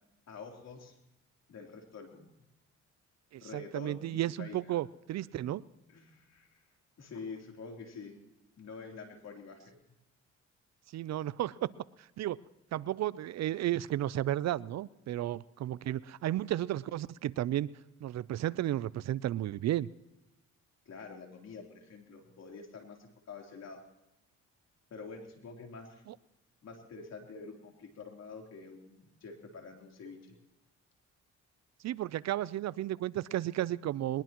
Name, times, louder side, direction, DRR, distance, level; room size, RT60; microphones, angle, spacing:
voice 1, 0.3-1.0 1.5-2.4 3.4-4.7 5.3-5.4 5.9-6.6 7.0-8.2 8.6-9.8 20.9-23.8 24.9-26.0 26.6-30.4, left 4 dB, 60° left, 1 dB, 3.5 m, -47 dB
voice 2, 3.3-5.6 10.9-11.7 12.0-12.4 12.7-17.7 18.0-19.9 26.1-26.2 31.8-34.2, right 13 dB, 60° right, 20 dB, 0.5 m, -33 dB
21.5 x 20.5 x 3.0 m, 0.94 s
cardioid pair, 90°, 30 cm